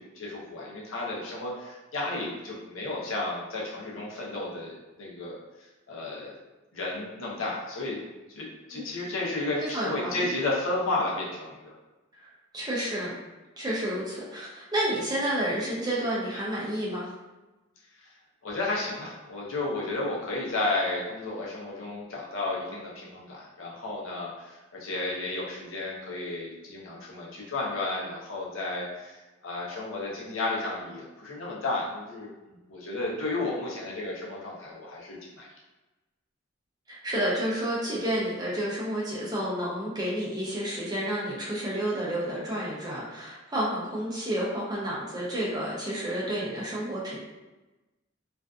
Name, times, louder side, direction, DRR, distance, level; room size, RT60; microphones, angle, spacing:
voice 1, 0.0-5.4 5.9-6.4 6.7-8.0 8.3-11.7 18.0-18.1 18.4-32.3 32.7-35.5, left 2 dB, 85° left, -4 dB, 0.7 m, -33 dB
voice 2, 9.6-10.3 12.1-13.1 13.6-17.1 36.9-47.2, right 1 dB, 20° right, -6 dB, 0.5 m, -30 dB
2.5 x 2.3 x 2.3 m, 1.1 s
head